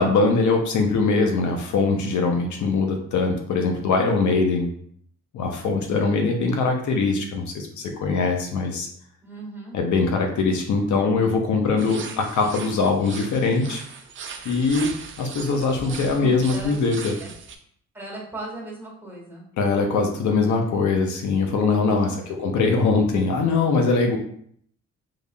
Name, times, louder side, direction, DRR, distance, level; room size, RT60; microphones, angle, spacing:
voice 1, 0.0-4.7 5.3-8.9 9.7-13.8 14.4-17.1 19.6-24.2, left 4 dB, 70° left, 3 dB, 0.7 m, -22 dB
voice 2, 9.2-9.8 16.1-16.7 17.2-17.3 17.9-19.5 21.9-22.5, right 2 dB, 5° right, -3 dB, 1.3 m, -38 dB
sound 1, 11.8-17.6, right 5 dB, 40° right, 0.5 m, -39 dB
3.8 x 3.1 x 2.2 m, 0.64 s
cardioid pair, 90°, 30 cm